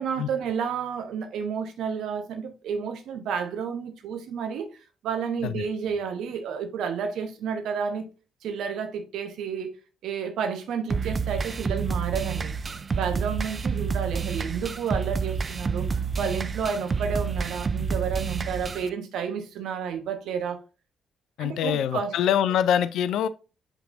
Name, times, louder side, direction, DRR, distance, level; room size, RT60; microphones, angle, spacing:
voice 1, 0.0-4.7 5.0-8.1 8.4-9.7 10.0-12.5 12.9-20.6 21.4-22.2, right 6 dB, 60° right, 1.0 m, -31 dB
sound 1, 10.9-18.9, right 5 dB, 35° right, 0.4 m, -29 dB
voice 2, 21.4-23.3, left 9 dB, 60° left, 0.4 m, -24 dB
7.1 x 5.6 x 2.6 m
figure-of-eight pair, 40°, 0 cm